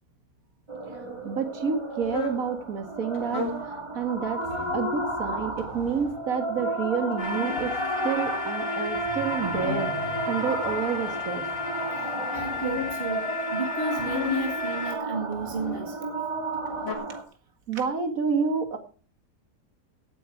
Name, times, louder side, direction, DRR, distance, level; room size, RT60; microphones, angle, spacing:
sound 1, 0.7-17.2, right 1 dB, 15° right, 2.2 m, -32 dB
voice 1, 1.2-4.5 4.7-7.8 8.0-11.5 17.7-18.8, right 6 dB, 55° right, 7 dB, 2.3 m, -29 dB
sound 2, 2.0-2.4 3.1-3.7 4.4-4.9 5.6-6.2 7.1-8.4 8.9-9.9 10.6-11.6 12.3-13.0 13.9-14.6 15.3-15.9 16.5-17.0, left 5 dB, 50° left, 3.1 m, -36 dB
sound 3, 7.2-14.9, left 6 dB, 30° left, 4.0 m, -34 dB
voice 2, 12.3-16.2, right 3 dB, 35° right, 3 dB, 2.2 m, -32 dB
17.0 x 8.8 x 4.7 m, 0.37 s
omnidirectional pair, 1.8 m